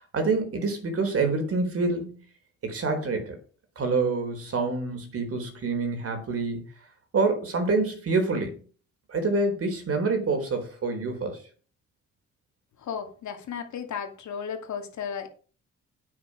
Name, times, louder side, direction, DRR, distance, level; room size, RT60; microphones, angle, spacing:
voice 1, 0.1-2.2 2.6-3.4 3.8-6.6 7.1-8.6 9.1-11.4, right 3 dB, 50° right, 3.9 m, -26 dB
voice 2, 12.8-15.3, left 7 dB, 70° left, 2.5 m, -34 dB
9.0 x 8.7 x 5.0 m
cardioid pair, 90°, 30 cm